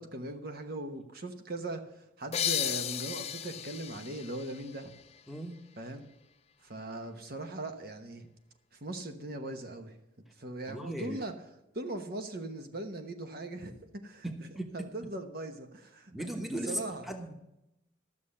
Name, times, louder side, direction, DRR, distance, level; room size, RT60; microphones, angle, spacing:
voice 1, 0.0-4.9 5.8-6.1 6.6-8.3 8.7-10.0 10.4-11.3 11.7-14.5 14.7-17.1, right 2 dB, 50° right, 6 dB, 1.0 m, -40 dB
sound 1, 2.3-5.7, left 10 dB, 30° left, 0.5 m, -35 dB
voice 2, 10.7-11.2 14.5-14.7 16.1-16.8 17.1-17.3, right 1 dB, ahead, 4 dB, 1.0 m, -37 dB
12.0 x 7.1 x 6.5 m, 0.88 s
head